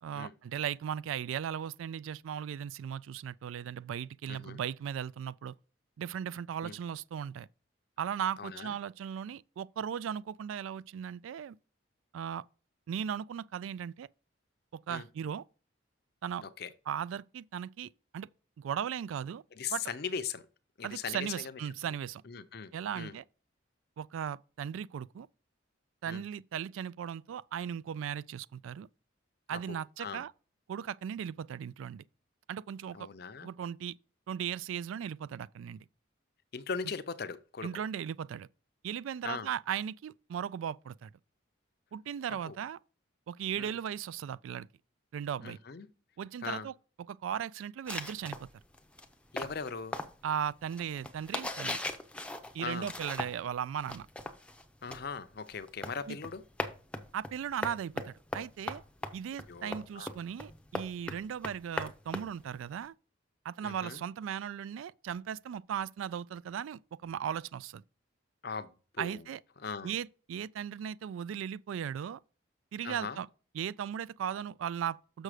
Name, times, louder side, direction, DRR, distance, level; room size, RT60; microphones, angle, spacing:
voice 1, 0.0-5.5 6.0-7.5 8.0-11.6 12.1-12.4 12.9-14.1 14.7-15.4 16.2-16.4 16.9-18.3 18.6-19.4 19.7-19.8 20.8-22.2 22.7-23.2 24.0-25.3 26.0-28.9 29.5-30.3 30.7-32.0 32.5-33.1 33.4-34.0 34.3-35.9 37.6-38.5 38.8-41.1 41.9-42.8 43.3-44.7 45.1-45.6 46.2-46.7 47.1-48.5 50.2-51.8 52.5-54.1 56.1-56.2 57.1-58.8 59.1-62.9 63.4-67.8 69.0-69.4 69.8-72.2 72.7-73.3 73.5-75.2, right 8 dB, 80° right, 0.3 m, -37 dB
voice 2, 4.3-4.6 6.6-6.8 8.4-8.8 14.9-15.1 16.4-16.7 19.5-20.4 20.8-21.6 22.2-23.1 26.0-26.2 29.5-30.2 32.9-33.5 36.5-37.8 39.2-39.5 42.4-42.6 43.6-43.8 45.4-45.9 46.4-46.7 49.3-50.0 52.6-52.9 54.8-56.4 59.5-60.1 63.6-64.0 68.4-69.2 69.6-70.0 72.8-73.2, left 5 dB, 50° left, 0.5 m, -40 dB
sound 1, 47.9-53.5 53.8-62.9, left 1 dB, 5° left, 0.5 m, -40 dB
6.5 x 6.3 x 4.9 m
head